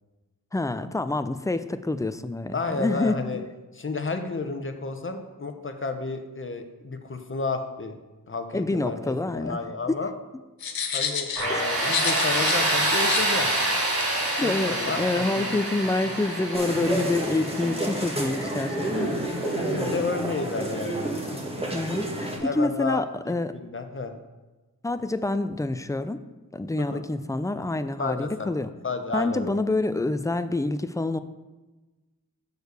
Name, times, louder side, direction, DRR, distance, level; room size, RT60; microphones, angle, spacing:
voice 1, 0.5-3.2 8.5-9.6 9.9-10.0 11.5-11.8 14.4-19.1 21.7-23.5 24.8-26.2 26.5-28.7 29.1-31.2, left 2 dB, 10° left, 11 dB, 0.4 m, -27 dB
voice 2, 2.5-3.4 3.7-8.0 8.3-10.1 10.9-13.5 14.4-15.7 16.0-16.2 19.6-21.1 22.4-24.1 26.8-27.0 28.0-28.5 28.8-29.6, left 3 dB, 35° left, 6 dB, 0.9 m, -31 dB
sound 1, 10.6-12.6 12.9-13.2 14.0-14.1, left 6 dB, 90° left, 0.8 m, -30 dB
Tools, 11.4-20.1, right 1 dB, 90° right, 2.6 m, -27 dB
sound 2, 16.5-22.4, right 1 dB, 15° right, 1.6 m, -30 dB
6.6 x 4.6 x 6.6 m, 1.1 s
wide cardioid pair, 75°, 35 cm